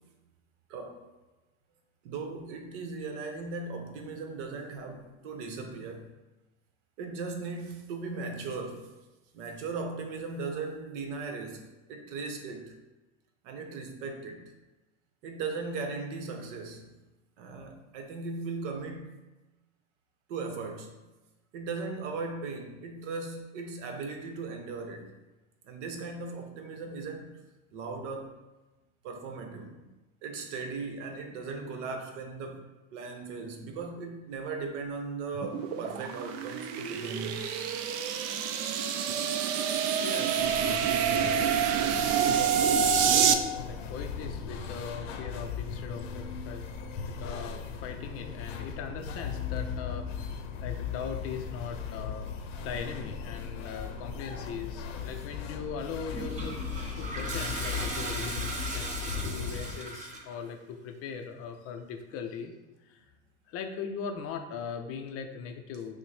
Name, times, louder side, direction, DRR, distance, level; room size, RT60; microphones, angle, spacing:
voice 1, 0.7-1.0 2.0-6.1 7.0-8.9 9.3-11.6 11.9-12.7 13.4-14.4 15.2-16.9 17.4-19.1 20.3-20.9 21.5-25.1 25.6-27.3 27.7-28.3 29.0-29.9 30.2-32.6 32.9-37.5, right 4 dB, 70° right, 4 dB, 0.9 m, -38 dB
sound 1, 35.4-43.3, right 8 dB, 50° right, 0.5 m, -27 dB
voice 2, 40.0-41.5 41.8-50.3 50.6-52.3 52.6-56.7 57.0-62.5 62.9-63.1 63.5-66.0, left 6 dB, 40° left, 5 dB, 0.5 m, -40 dB
sound 2, 40.4-59.8, left 6 dB, 75° left, 0.7 m, -38 dB
Toilet flush, 56.1-60.4, right 2 dB, 20° right, 0.7 m, -37 dB
5.9 x 2.1 x 3.2 m, 1.1 s
supercardioid pair, 115°, 38 cm